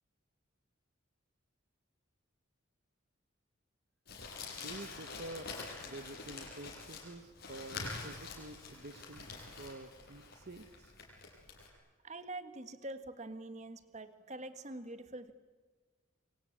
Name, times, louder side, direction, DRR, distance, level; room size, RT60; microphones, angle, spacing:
Crumpling crinkling, 4.1-11.7, left 3 dB, 45° left, 6.7 m, -46 dB
voice 1, 4.6-5.5 5.8-11.0, right 2 dB, 50° right, 9 dB, 1.1 m, -49 dB
voice 2, 12.0-15.3, right 2 dB, 35° right, 10 dB, 1.6 m, -45 dB
28.0 x 24.0 x 8.8 m, 1.4 s
head